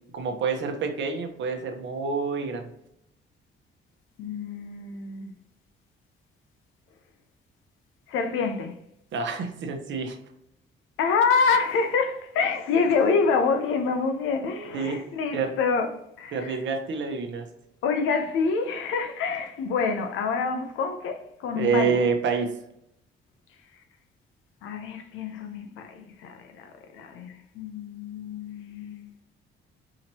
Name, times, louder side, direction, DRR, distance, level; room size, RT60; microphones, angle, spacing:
voice 1, 0.1-2.7 9.1-10.2 14.7-15.0 15.3-15.5 16.3-17.4 21.5-22.5, right 5 dB, 70° right, 1.0 m, -27 dB
voice 2, 4.2-5.3 8.1-8.8 11.0-16.6 17.8-22.0 24.6-29.1, left 5 dB, 85° left, 0.7 m, -27 dB
4.9 x 3.0 x 2.8 m
cardioid pair, 90°, 20 cm